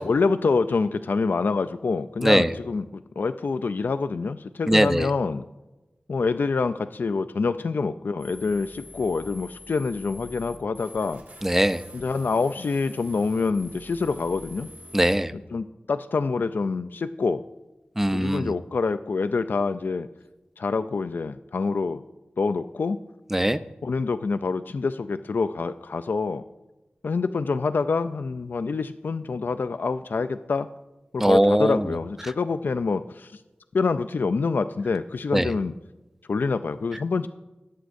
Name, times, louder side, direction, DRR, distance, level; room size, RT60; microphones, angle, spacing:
voice 1, 0.0-5.4 6.1-11.2 11.9-14.7 15.5-17.4 18.1-20.1 20.6-22.0 22.4-23.0 23.8-26.4 27.0-30.7 31.1-33.3 33.7-35.7 36.3-37.3, left 4 dB, 75° left, 11 dB, 0.3 m, -26 dB
voice 2, 2.2-2.5 4.7-5.1 11.4-11.8 14.9-15.3 18.0-18.5 23.3-23.6 31.2-31.9 35.3-35.5, right 1 dB, 10° right, 13 dB, 0.4 m, -20 dB
sound 1, 8.2-15.2, left 1 dB, 75° right, 2.5 m, -45 dB
17.5 x 8.1 x 2.6 m, 1.1 s
wide cardioid pair, 80°, 3 cm